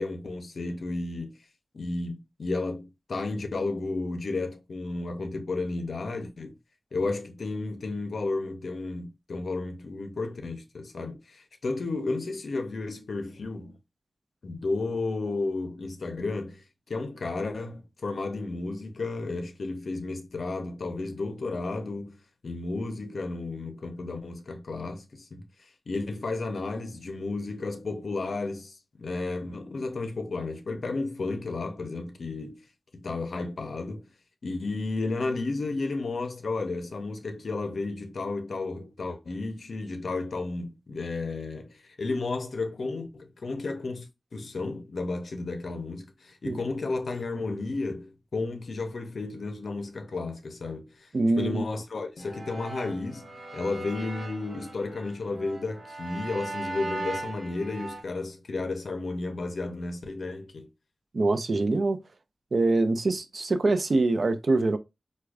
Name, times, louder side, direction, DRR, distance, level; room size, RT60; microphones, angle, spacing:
voice 1, 0.0-1.3 1.7-6.5 6.9-13.8 14.4-32.6 33.0-34.1 34.4-51.1 51.4-60.7, left 3 dB, 80° left, 0.5 m, -33 dB
voice 2, 51.1-51.6 61.1-62.0 62.5-64.8, right 2 dB, 65° right, 0.4 m, -24 dB
sound 1, 52.2-58.0, right 2 dB, 85° right, 0.9 m, -39 dB
4.6 x 2.2 x 2.4 m
wide cardioid pair, 75°, 0 cm